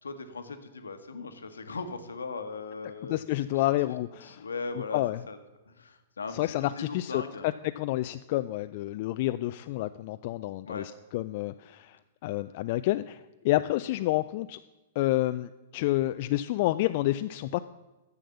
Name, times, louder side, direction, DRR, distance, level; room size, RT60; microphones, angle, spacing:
voice 1, 0.0-3.2 3.8-3.9 4.2-5.4 5.7-7.5 10.6-10.9, left 4 dB, 80° left, 8 dB, 1.1 m, -39 dB
voice 2, 3.1-4.4 4.9-5.2 6.3-12.0 12.2-14.6 15.0-17.6, left 16 dB, 50° left, 11 dB, 0.3 m, -29 dB
10.5 x 7.1 x 6.9 m, 1.1 s
figure-of-eight pair, 105°, 0 cm